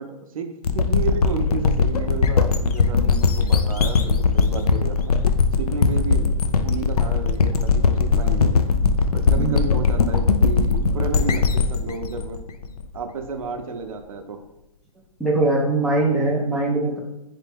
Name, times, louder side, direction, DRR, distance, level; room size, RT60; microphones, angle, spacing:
voice 1, 0.0-5.0 5.6-8.5 9.1-12.4 12.9-14.4, right 4 dB, 65° right, 5 dB, 0.6 m, -32 dB
sound 1, 0.6-13.3, left 5 dB, 90° left, 0.4 m, -20 dB
voice 2, 9.4-9.7 15.2-17.0, right 2 dB, ahead, -5 dB, 0.3 m, -21 dB
3.3 x 3.3 x 3.5 m, 0.88 s
hypercardioid pair, 135°, 19 cm